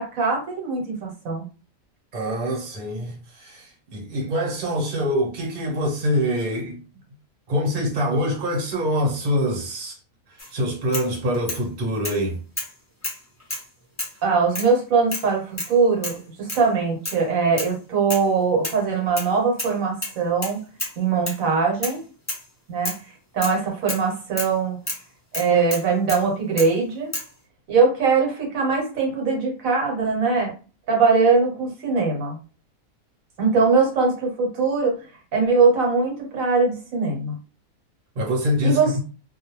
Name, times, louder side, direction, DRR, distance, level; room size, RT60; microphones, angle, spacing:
voice 1, 0.0-1.4 14.2-20.6 21.0-22.0 22.7-22.9 23.3-24.8 25.3-27.1 27.7-30.5 30.9-32.4 33.4-35.0 35.3-37.3 38.6-39.0, right 4 dB, 75° right, 1.2 m, -21 dB
voice 2, 2.1-6.8 7.5-10.0 10.3-12.4 38.1-39.0, equal, 40° right, 0.9 m, -25 dB
sound 1, 10.4-10.5 10.9-11.6 12.0-12.2 12.6-12.7 13.0-13.7 14.0-14.2 14.5-14.7 15.1-15.3 15.6-15.8 16.0-16.2 16.5-16.7 17.1-17.2 17.6-17.7 18.1-18.3 18.6-19.3 19.6-19.8 20.0-21.0 21.3-21.4 21.8-22.0 22.3-22.5 22.9-23.0 23.4-23.6 23.9-24.1 24.4-24.5 24.9-25.0 25.3-26.3 26.6-26.7 27.1-27.3, left 1 dB, 20° left, 0.5 m, -31 dB
2.3 x 2.2 x 3.0 m
omnidirectional pair, 1.5 m